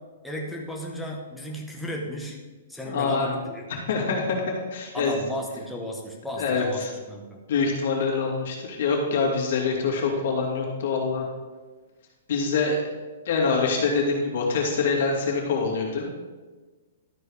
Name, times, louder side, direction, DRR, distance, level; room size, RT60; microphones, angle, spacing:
voice 1, 0.2-2.4 2.7-3.7 4.9-6.8 7.1-7.4, left 1 dB, ahead, -2 dB, 1.3 m, -34 dB
voice 2, 2.9-3.3 3.7-5.1 6.4-6.9 7.5-11.2 12.3-12.8 13.3-16.1, left 4 dB, 60° left, -1 dB, 2.6 m, -25 dB
12.5 x 4.6 x 4.9 m, 1.3 s
hypercardioid pair, 160°, 0 cm